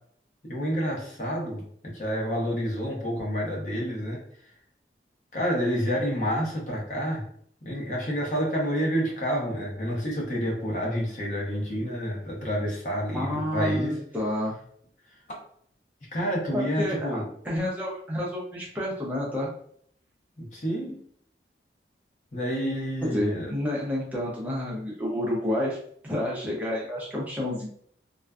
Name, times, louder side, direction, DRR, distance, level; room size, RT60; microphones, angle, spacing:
voice 1, 0.4-1.6 1.9-4.2 5.3-7.2 7.6-14.0 16.1-17.2 20.4-21.0 22.3-23.5, equal, 45° left, -2 dB, 0.7 m, -28 dB
voice 2, 13.1-14.5 16.5-19.5 23.1-25.8 26.0-27.7, left 1 dB, 10° right, -4 dB, 0.5 m, -30 dB
2.4 x 2.2 x 2.3 m, 0.63 s
head